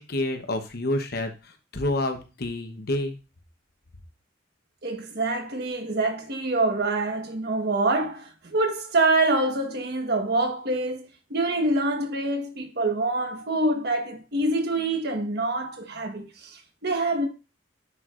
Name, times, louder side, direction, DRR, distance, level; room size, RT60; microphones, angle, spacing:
voice 1, 0.0-3.2, left 1 dB, 55° left, 1.0 m, -29 dB
voice 2, 4.8-11.0 11.3-17.3, right 2 dB, 55° right, 1.3 m, -26 dB
9.6 x 4.6 x 2.5 m
head